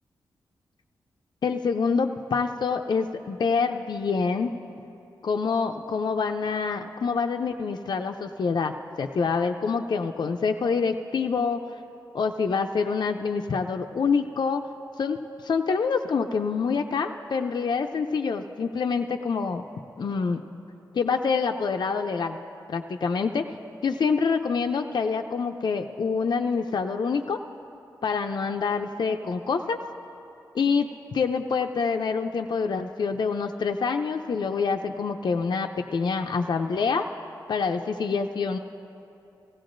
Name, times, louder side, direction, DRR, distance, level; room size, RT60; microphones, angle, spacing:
voice 1, 1.4-4.5 5.2-8.7 9.0-11.7 12.1-14.6 15.0-19.6 20.0-20.4 20.9-22.4 22.7-23.4 23.8-27.4 28.0-29.8 30.5-37.1 37.5-38.6, left 5 dB, 60° left, 4 dB, 0.5 m, -26 dB
17.5 x 16.0 x 2.6 m, 2.9 s
cardioid pair, 50°, 8 cm